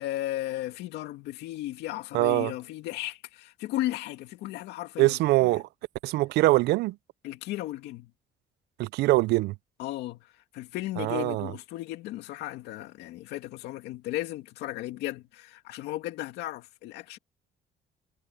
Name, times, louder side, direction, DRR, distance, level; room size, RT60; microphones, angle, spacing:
voice 1, 0.0-5.6 7.2-8.1 9.8-17.2, left 15 dB, 85° left, 2.4 m, -35 dB
voice 2, 2.1-2.5 5.0-5.6 6.0-7.0 8.8-9.5 11.0-11.5, right 19 dB, 80° right, 0.4 m, -23 dB
cardioid pair, 110°, 17 cm